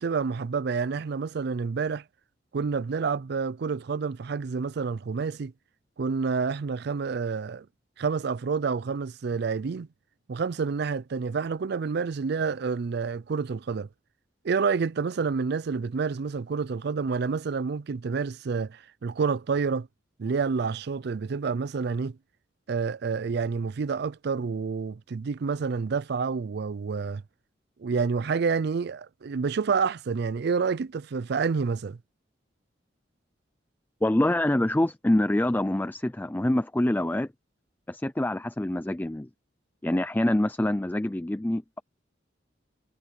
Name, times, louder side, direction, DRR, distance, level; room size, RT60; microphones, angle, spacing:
voice 1, 0.0-2.0 2.5-5.5 6.0-7.7 8.0-9.9 10.3-13.9 14.4-19.9 20.2-22.2 22.7-27.2 27.8-32.0, right 5 dB, 60° right, 0.4 m, -28 dB
voice 2, 34.0-37.3 37.9-39.3 39.8-41.8, left 1 dB, 10° left, 0.4 m, -25 dB
head